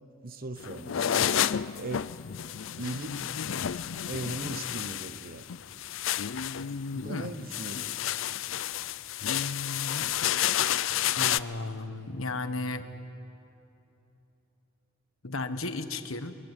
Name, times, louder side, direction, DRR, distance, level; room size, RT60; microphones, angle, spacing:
voice 1, 0.2-1.3 1.7-2.1 2.8-3.3 4.1-5.5 6.9-8.0, right 2 dB, 45° right, 11 dB, 1.1 m, -38 dB
sound 1, 0.6-11.4, left 10 dB, 65° left, 0.5 m, -30 dB
voice 2, 11.2-12.8 15.2-16.3, left 3 dB, 85° left, 9 dB, 1.4 m, -34 dB
23.5 x 22.0 x 9.3 m, 3.0 s
head